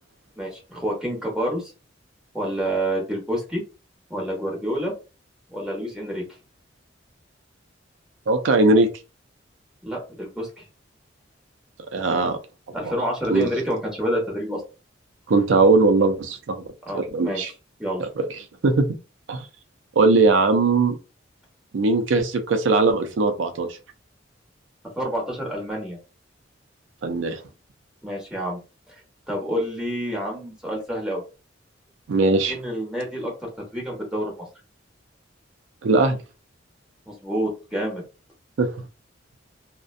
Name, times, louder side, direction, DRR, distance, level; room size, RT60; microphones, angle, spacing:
voice 1, 0.4-1.6 2.3-3.6 4.1-4.9 5.5-6.2 9.8-10.5 12.7-14.6 16.8-17.5 17.8-18.0 25.0-26.0 28.0-28.6 28.9-29.0 29.3-31.2 32.5-34.4 37.1-38.0, equal, 5° right, 1.1 m, -28 dB
voice 2, 8.3-8.9 11.9-12.4 12.8-12.9 13.3-13.5 15.3-16.6 16.9-17.5 18.0-18.3 18.6-18.9 19.3-19.5 20.0-20.9 21.7-23.7 27.0-27.4 32.1-32.6 35.8-36.2 38.6-38.7, right 3 dB, 80° right, 0.4 m, -19 dB
2.5 x 2.1 x 2.4 m
head